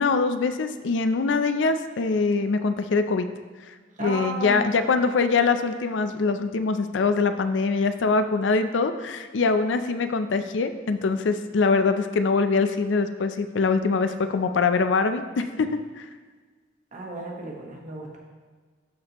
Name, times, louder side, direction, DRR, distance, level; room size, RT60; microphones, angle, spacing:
voice 1, 0.0-3.3 4.0-16.1, left 4 dB, 80° left, 9 dB, 0.5 m, -23 dB
voice 2, 4.0-4.9 16.9-18.2, right 2 dB, 45° right, -1 dB, 1.2 m, -34 dB
12.5 x 4.2 x 3.0 m, 1.5 s
head